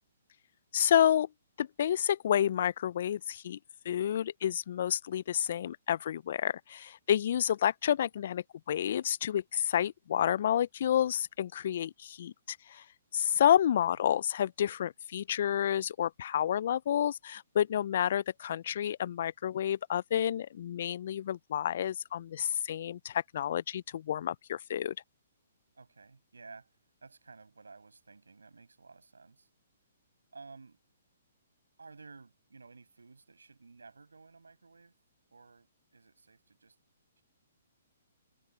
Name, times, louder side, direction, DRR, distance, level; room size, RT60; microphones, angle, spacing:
voice 1, 0.7-1.3 1.6-3.6 3.8-12.8 13.1-24.9, left 10 dB, 55° left, 0.7 m, -30 dB
voice 2, 25.7-26.7 27.0-29.5 30.3-30.8 31.8-34.9 35.3-36.8, right 4 dB, 80° right, 7.1 m, -54 dB
figure-of-eight pair, 125°, 0 cm